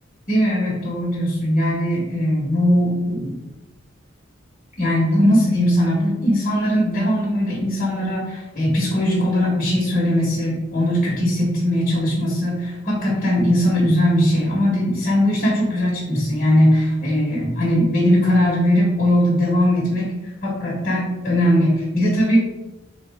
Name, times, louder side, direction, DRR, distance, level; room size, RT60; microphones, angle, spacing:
voice 1, 0.3-3.4 4.8-20.1 20.4-22.4, equal, 40° left, -5 dB, 1.1 m, -19 dB
4.0 x 3.0 x 3.5 m, 1.0 s
head